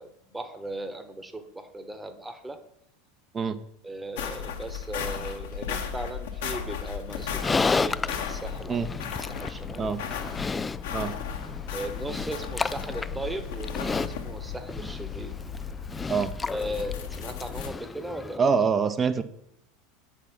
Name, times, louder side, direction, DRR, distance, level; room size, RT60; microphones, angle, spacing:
voice 1, 0.0-2.6 3.8-8.8 9.2-9.9 10.4-10.6 11.7-15.3 16.5-18.5, right 1 dB, 10° right, 9 dB, 1.2 m, -37 dB
sound 1, 4.2-17.7, left 7 dB, 65° left, 1.3 m, -35 dB
Livestock farm animals working animals, 7.1-18.4, left 4 dB, 15° left, 0.3 m, -33 dB
voice 2, 18.4-19.2, right 5 dB, 25° right, 11 dB, 0.9 m, -25 dB
8.4 x 5.9 x 6.0 m, 0.73 s
figure-of-eight pair, 80°, 0 cm